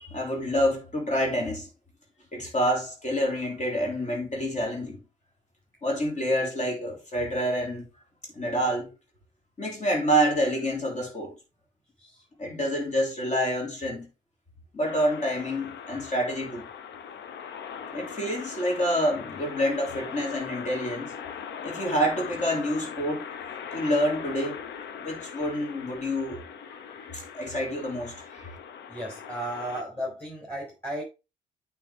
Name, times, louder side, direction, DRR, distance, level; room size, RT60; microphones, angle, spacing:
voice 1, 0.0-1.7 2.3-5.0 5.8-7.9 8.3-8.9 9.6-11.3 12.4-14.1 14.7-16.6 17.9-21.2 21.6-23.3 23.7-24.6 25.0-26.4 27.1-28.5, equal, 35° left, 3.4 m, -27 dB
sound 1, 14.8-29.8, left 7 dB, 60° left, 1.0 m, -40 dB
voice 2, 28.9-31.0, right 1 dB, 10° left, 4.7 m, -35 dB
8.9 x 4.8 x 3.8 m
figure-of-eight pair, 40°, 21 cm